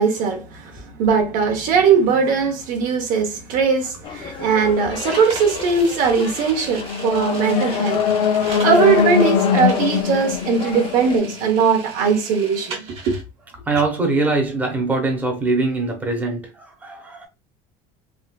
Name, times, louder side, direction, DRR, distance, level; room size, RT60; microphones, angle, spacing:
voice 1, 0.0-8.0 8.6-13.2, right 5 dB, 60° right, 0.9 m, -19 dB
sound 1, 4.0-11.2, left 7 dB, 35° left, 0.5 m, -34 dB
sound 2, 5.1-13.2, right 4 dB, 40° right, 1.0 m, -37 dB
sound 3, 6.7-11.8, left 7 dB, 90° left, 0.4 m, -21 dB
voice 2, 13.7-17.3, right 3 dB, 10° right, 0.8 m, -22 dB
3.5 x 2.5 x 2.2 m
cardioid pair, 140°, 15 cm